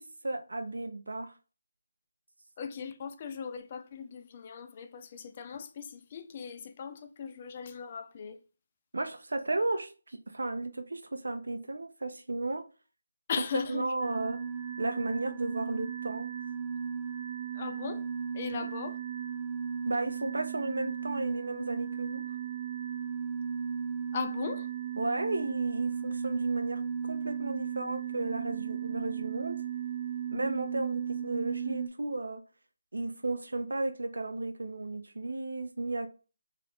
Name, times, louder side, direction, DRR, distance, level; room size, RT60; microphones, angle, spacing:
voice 1, 0.0-1.3 8.9-12.6 13.5-14.4 14.8-16.3 18.5-18.7 19.8-22.2 25.0-29.6 30.3-32.4 32.9-36.1, right 2 dB, 85° right, 0.6 m, -34 dB
voice 2, 2.6-8.4 13.3-13.9 17.5-18.1 18.3-19.0 24.1-24.7, left 6 dB, 30° left, 0.3 m, -38 dB
sound 1, 14.0-31.9, right 7 dB, 35° right, 0.5 m, -36 dB
2.9 x 2.6 x 3.3 m
figure-of-eight pair, 165°, 0 cm